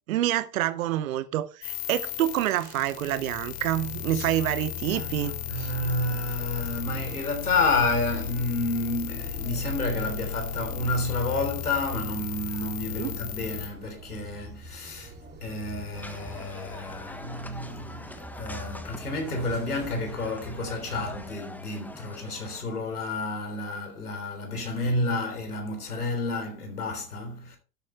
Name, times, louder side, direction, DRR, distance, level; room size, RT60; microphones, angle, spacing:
voice 1, 0.1-5.7 13.0-13.2, right 13 dB, 65° right, 0.9 m, -27 dB
sound 1, 1.6-13.7, left 8 dB, 60° left, 2.9 m, -35 dB
voice 2, 4.9-27.6, left 2 dB, 85° left, 3.8 m, -30 dB
sound 2, 5.8-21.3, right 2 dB, 20° right, 2.8 m, -47 dB
sound 3, 15.9-22.6, left 1 dB, 5° left, 1.3 m, -44 dB
12.5 x 8.5 x 3.3 m
figure-of-eight pair, 90°, 44 cm